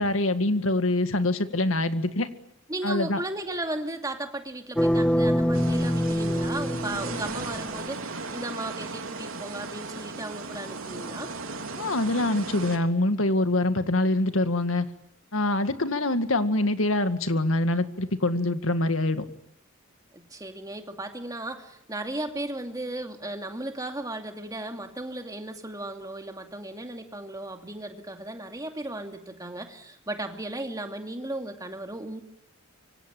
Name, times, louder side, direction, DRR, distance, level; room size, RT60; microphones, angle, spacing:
voice 1, 0.0-2.3 2.8-3.2 11.8-14.9 15.3-19.2, left 2 dB, 80° left, 9 dB, 2.0 m, -25 dB
voice 2, 2.7-11.3 20.1-32.2, right 1 dB, 20° right, 5 dB, 2.6 m, -35 dB
sound 1, 4.8-7.8, equal, 5° left, 1.0 m, -25 dB
sound 2, 5.5-12.8, right 3 dB, 85° right, 3.5 m, -36 dB
25.5 x 24.5 x 9.1 m, 0.75 s
head